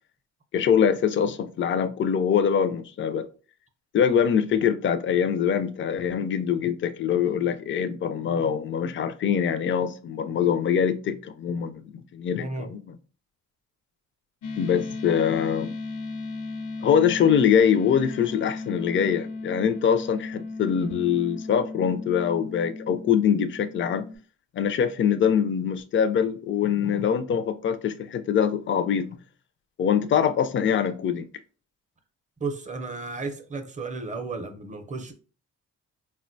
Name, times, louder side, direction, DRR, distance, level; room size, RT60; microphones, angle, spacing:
voice 1, 0.5-3.3 3.9-12.8 14.6-15.7 16.8-24.1 24.5-29.2 29.8-31.3, left 8 dB, 40° left, 0.4 m, -23 dB
voice 2, 12.4-12.7 32.4-35.1, right 3 dB, 25° right, 0.5 m, -33 dB
sound 1, 14.4-24.2, left 3 dB, 85° left, 0.7 m, -36 dB
3.8 x 2.2 x 2.6 m
cardioid pair, 90°, 30 cm